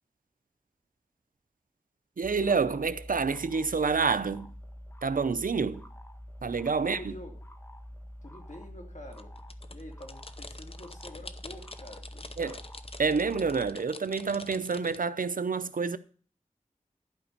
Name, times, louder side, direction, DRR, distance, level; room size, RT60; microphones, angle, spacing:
sound 1, 2.2-13.7, equal, 15° left, 1.3 m, -46 dB
voice 1, 2.2-4.5 5.0-5.8 6.4-7.1 12.4-12.5 13.0-16.0, right 5 dB, 85° right, 0.6 m, -28 dB
voice 2, 6.8-7.4 8.2-9.4 9.7-12.6, left 1 dB, 60° left, 2.8 m, -46 dB
sound 2, 9.1-15.0, left 3 dB, 45° left, 0.8 m, -47 dB
11.5 x 5.2 x 6.6 m
wide cardioid pair, 45°, 14 cm